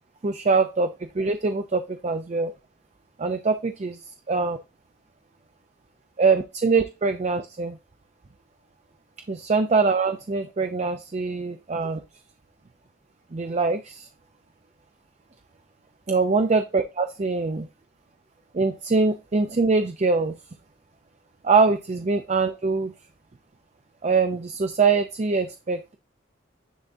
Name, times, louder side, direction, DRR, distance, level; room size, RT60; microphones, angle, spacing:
voice 1, 0.2-0.9 1.1-2.5 3.2-4.0 4.3-4.6 6.2-7.8 9.3-12.0 13.3-14.1 16.1-17.7 18.5-20.4 21.4-22.9 24.0-25.9, right 4 dB, 35° right, 7 dB, 0.4 m, -23 dB
10.0 x 3.6 x 2.6 m, 0.28 s
head